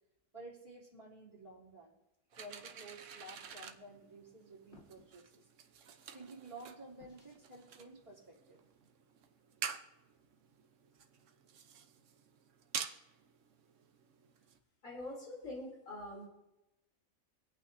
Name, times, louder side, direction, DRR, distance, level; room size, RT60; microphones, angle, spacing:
voice 1, 0.3-2.0 2.4-5.4 6.1-8.6, right 2 dB, 25° right, -8 dB, 2.9 m, -53 dB
sound 1, 2.3-14.6, right 7 dB, 65° right, 1.1 m, -49 dB
sound 2, 4.7-5.1 7.0-7.5, left 3 dB, 55° left, 2.2 m, -60 dB
voice 2, 14.8-16.3, left 1 dB, 75° left, -4 dB, 3.6 m, -44 dB
25.5 x 8.7 x 2.7 m, 0.94 s
omnidirectional pair, 1.4 m